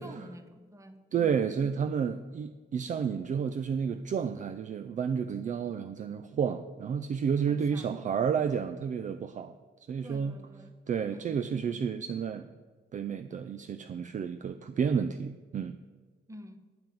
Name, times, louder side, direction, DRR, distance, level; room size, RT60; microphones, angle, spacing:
voice 1, 0.0-1.5 7.5-8.2 10.0-10.7 11.1-11.4 16.3-16.6, equal, 15° right, 9 dB, 1.0 m, -48 dB
voice 2, 1.1-9.5 9.9-10.4 10.9-12.4 12.9-15.8, right 7 dB, 40° right, 10 dB, 0.4 m, -31 dB
8.8 x 5.7 x 7.4 m, 1.4 s
cardioid pair, 90°, 20 cm